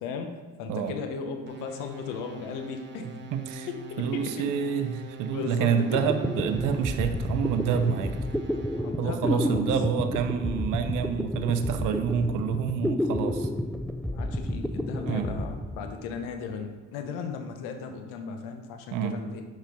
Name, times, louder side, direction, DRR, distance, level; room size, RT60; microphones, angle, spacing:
voice 1, 0.0-3.1 3.7-4.5 5.3-6.0 8.8-9.7 14.1-19.4, left 5 dB, 75° left, 6 dB, 0.9 m, -36 dB
sound 1, 1.5-9.0, right 1 dB, 35° right, 1.3 m, -44 dB
voice 2, 3.3-3.7 4.0-8.2 9.0-13.5 15.1-15.3 18.9-19.2, right 7 dB, 65° right, 8 dB, 0.8 m, -28 dB
sound 2, 5.9-16.4, left 1 dB, ahead, 0.3 m, -31 dB
5.8 x 5.5 x 5.1 m, 1.3 s
supercardioid pair, 80°, 33 cm